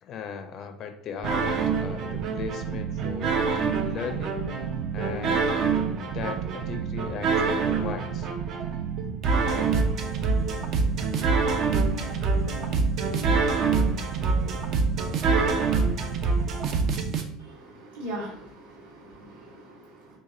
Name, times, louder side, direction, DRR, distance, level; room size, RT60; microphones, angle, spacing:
voice 1, 0.0-4.4 4.9-8.3 9.4-9.7, left 7 dB, 45° left, 7 dB, 0.4 m, -38 dB
sound 1, 1.2-17.2, right 4 dB, 50° right, 0.4 m, -26 dB
voice 2, 17.4-20.2, right 1 dB, 90° right, -9 dB, 1.5 m, -40 dB
2.9 x 2.5 x 3.7 m, 0.70 s
figure-of-eight pair, 70°, 0 cm